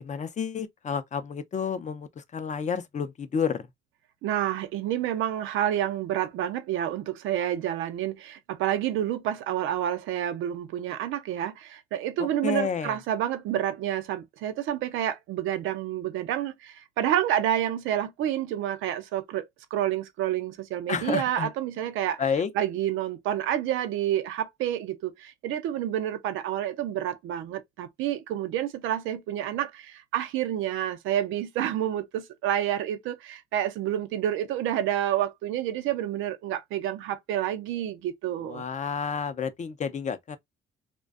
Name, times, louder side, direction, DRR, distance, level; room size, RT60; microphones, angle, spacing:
voice 1, 0.0-3.7 12.2-13.0 20.9-21.5 22.2-22.5 38.5-40.4, left 6 dB, 35° left, 0.5 m, -30 dB
voice 2, 4.2-22.2 22.5-38.7, right 11 dB, 90° right, 0.5 m, -29 dB
2.5 x 2.1 x 2.3 m
cardioid pair, 90°, 20 cm